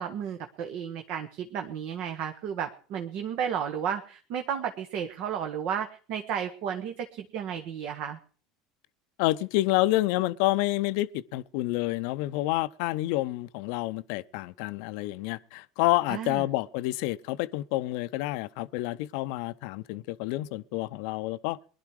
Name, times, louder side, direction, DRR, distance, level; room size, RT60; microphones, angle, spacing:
voice 1, 0.0-8.2 16.1-16.4, right 8 dB, 60° right, 1.3 m, -33 dB
voice 2, 9.2-21.6, left 18 dB, 65° left, 0.6 m, -28 dB
20.5 x 11.5 x 4.9 m
hypercardioid pair, 80°, 2 cm